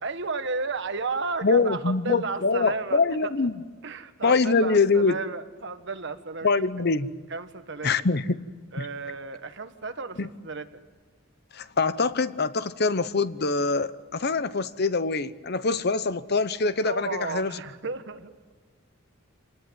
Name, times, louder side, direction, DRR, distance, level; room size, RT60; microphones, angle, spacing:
voice 1, 0.0-3.3 3.8-6.5 7.3-7.9 8.7-10.7 16.8-18.5, right 4 dB, 60° right, 9 dB, 1.5 m, -33 dB
voice 2, 1.4-3.5 4.2-5.2 6.4-7.1 7.8-8.4 8.8-8.9 10.2-10.3 11.5-17.6, left 4 dB, 55° left, 14 dB, 0.9 m, -24 dB
27.0 x 19.0 x 9.4 m, 1.5 s
head